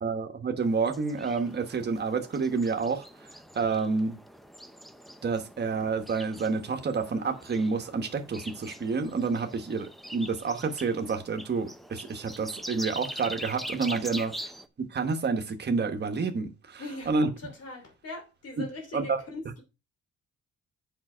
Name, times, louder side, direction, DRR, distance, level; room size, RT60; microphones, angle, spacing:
voice 1, 0.0-3.1 3.5-4.2 5.2-14.5 14.8-17.3 18.9-19.2, right 4 dB, 35° right, 1.2 m, -29 dB
sound 1, 0.6-14.7, equal, ahead, 0.5 m, -43 dB
voice 2, 16.8-17.1 17.4-19.6, left 2 dB, 50° left, 2.9 m, -41 dB
7.5 x 5.6 x 5.5 m
wide cardioid pair, 175°, 31 cm